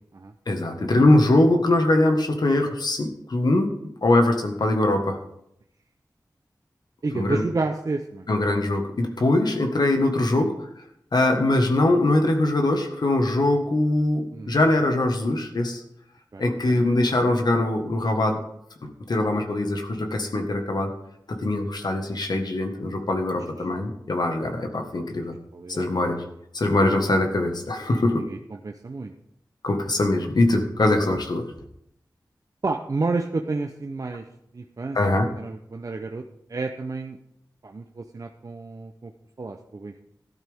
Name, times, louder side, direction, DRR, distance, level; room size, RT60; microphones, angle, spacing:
voice 1, 0.5-3.7 4.0-5.2 7.1-7.4 8.3-10.5 11.1-15.8 16.4-18.4 18.8-20.9 21.3-25.3 25.7-26.2 26.5-28.2 29.6-31.5 34.9-35.3, left 2 dB, 70° left, 5 dB, 1.6 m, -22 dB
voice 2, 7.0-8.3 10.3-10.5 14.3-14.6 16.3-17.0 17.2-17.4 25.5-25.9 28.3-29.1 32.6-34.2 34.5-35.0 35.3-36.2 36.5-37.2 37.6-39.1 39.4-40.0, right 3 dB, 50° right, 4 dB, 0.7 m, -30 dB
14.0 x 12.0 x 3.6 m, 0.76 s
wide cardioid pair, 90°, 7 cm